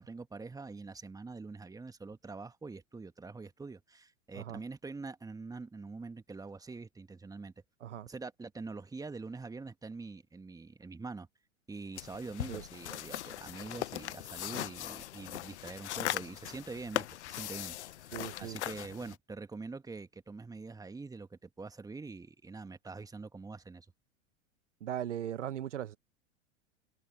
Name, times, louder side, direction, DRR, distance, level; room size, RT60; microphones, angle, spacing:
voice 1, 0.0-7.5 8.1-11.3 11.7-23.9, right 3 dB, 10° right, 1.8 m, -45 dB
sound 1, 12.0-19.2, left 14 dB, 65° left, 1.1 m, -39 dB
voice 2, 18.1-18.6 24.8-26.0, right 10 dB, 70° right, 1.7 m, -38 dB
figure-of-eight pair, 90°, 37 cm